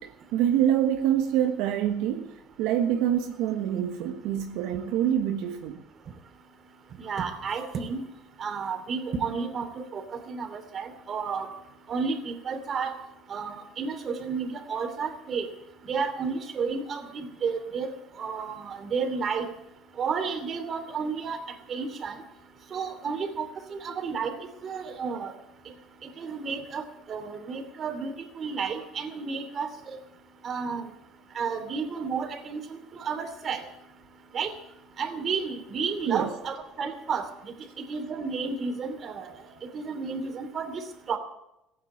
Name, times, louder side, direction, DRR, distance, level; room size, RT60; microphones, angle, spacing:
voice 1, 0.0-5.8 36.1-36.3, right 10 dB, 80° right, 1.3 m, -26 dB
voice 2, 7.0-8.0 8.4-11.5 11.9-13.0 13.3-15.5 15.9-19.5 20.0-21.4 21.7-22.2 22.7-24.4 24.6-25.3 26.0-30.0 30.4-30.9 31.3-33.6 34.3-34.5 35.0-37.5 37.9-39.3 39.6-41.2, right 5 dB, 40° right, 3.0 m, -32 dB
15.5 x 9.3 x 8.4 m
cardioid pair, 115°, 0 cm